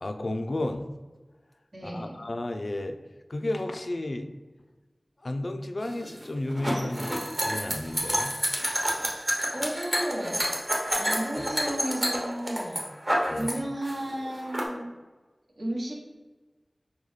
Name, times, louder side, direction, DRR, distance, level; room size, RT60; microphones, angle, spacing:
voice 1, 0.0-0.8 1.8-3.0 3.3-4.3 5.2-8.3 11.3-11.5 13.3-13.5, left 1 dB, 65° left, 6 dB, 0.3 m, -32 dB
voice 2, 1.7-2.3 9.5-10.5 10.9-14.9 15.6-15.9, right 1 dB, 60° right, -3 dB, 1.0 m, -34 dB
sound 1, 5.8-13.5 13.8-14.6, equal, 25° right, 0.9 m, -28 dB
5.3 x 2.1 x 3.1 m, 1.2 s
wide cardioid pair, 60°, 0 cm